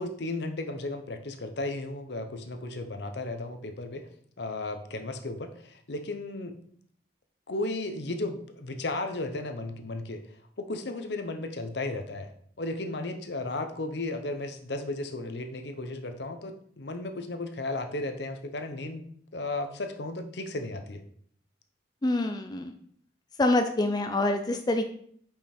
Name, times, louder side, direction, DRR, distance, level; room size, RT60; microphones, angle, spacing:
voice 1, 0.0-4.1 4.4-6.5 7.5-10.2 10.6-12.3 12.6-19.1 19.3-21.0, left 2 dB, 65° left, 7 dB, 0.8 m, -34 dB
voice 2, 22.0-22.7 23.4-24.9, left 2 dB, 20° left, 6 dB, 0.4 m, -26 dB
5.6 x 5.1 x 4.4 m, 0.62 s
head